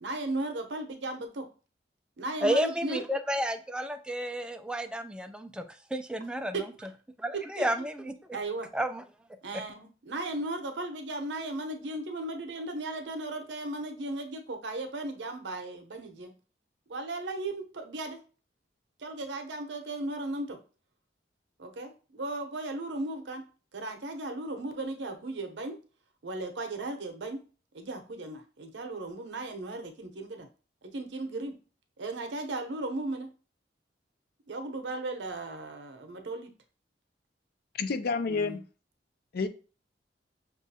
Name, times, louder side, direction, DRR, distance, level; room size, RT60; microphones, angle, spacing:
voice 1, 0.0-1.5 2.2-3.0 6.5-6.9 7.3-7.9 8.3-8.7 9.4-16.3 16.9-18.2 19.0-20.6 21.6-23.4 23.7-25.8 26.2-27.4 27.7-30.5 30.8-31.6 32.0-33.3 34.5-36.5 38.3-38.6, right 2 dB, 85° right, 5 dB, 0.7 m, -36 dB
voice 2, 2.4-5.6 5.9-6.6 7.2-8.1 8.7-9.0, equal, 5° right, 7 dB, 0.3 m, -31 dB
voice 3, 37.8-38.6 39.3-39.5, left 4 dB, 60° left, 11 dB, 0.4 m, -29 dB
6.1 x 2.4 x 2.7 m, 0.36 s
head